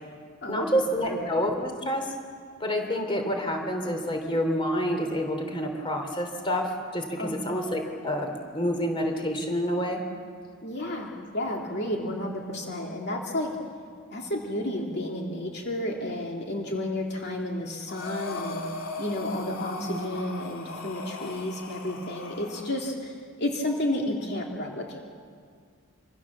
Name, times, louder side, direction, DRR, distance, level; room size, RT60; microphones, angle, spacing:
voice 1, 0.5-2.1 2.6-10.0 19.4-20.0, equal, 25° left, 4 dB, 3.2 m, -28 dB
voice 2, 10.6-13.6 14.1-18.6 19.0-25.0, left 1 dB, 50° left, 0 dB, 2.6 m, -31 dB
Breathing, 17.9-22.8, left 3 dB, 70° left, 2.6 m, -38 dB
26.5 x 25.5 x 7.4 m, 2.1 s
head